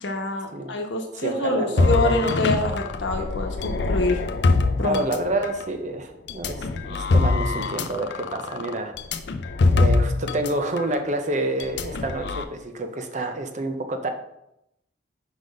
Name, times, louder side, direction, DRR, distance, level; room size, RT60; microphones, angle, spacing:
voice 1, 0.0-4.2 4.8-5.0, left 2 dB, 80° left, 3 dB, 1.0 m, -26 dB
voice 2, 1.1-2.1 4.8-8.9 9.7-14.1, right 2 dB, 40° right, 6 dB, 0.6 m, -28 dB
sound 1, 1.8-5.6 6.3-10.5 10.8-11.0 11.6-12.4, left 3 dB, 65° left, 0.4 m, -23 dB
4.9 x 4.0 x 5.2 m, 0.83 s
head